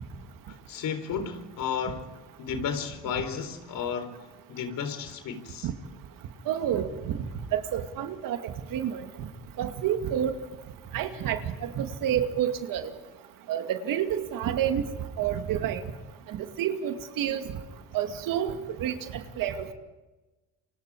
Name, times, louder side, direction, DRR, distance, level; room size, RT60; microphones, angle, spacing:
voice 1, 0.7-2.0 2.4-4.1 4.5-5.7, left 7 dB, 65° left, 4.0 m, -33 dB
voice 2, 6.5-7.2 7.5-9.0 9.6-10.3 10.9-12.9 13.5-14.9 15.2-15.8 16.3-17.4 17.9-19.7, right 10 dB, 70° right, 2.5 m, -29 dB
28.5 x 25.5 x 5.0 m
supercardioid pair, 75°, 35 cm